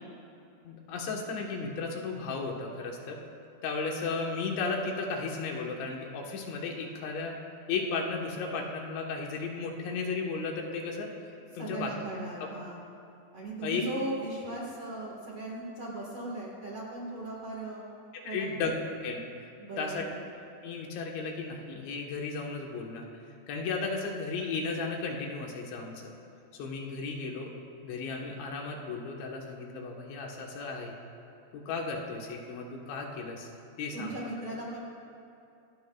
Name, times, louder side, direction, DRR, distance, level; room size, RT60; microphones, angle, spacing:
voice 1, 0.7-3.2 3.6-7.3 7.7-11.1 11.6-11.9 13.6-13.8 18.3-18.7 19.0-19.5 19.8-20.0 20.6-23.1 23.5-26.1 26.6-27.5 27.8-31.0 31.5-33.5 33.8-34.2, left 4 dB, 80° left, 0 dB, 3.6 m, -34 dB
voice 2, 11.6-12.8 13.3-17.8 18.2-18.6 19.6-20.2 33.9-34.8, right 2 dB, 55° right, -4 dB, 1.8 m, -38 dB
24.0 x 17.5 x 2.4 m, 2.6 s
omnidirectional pair, 5.2 m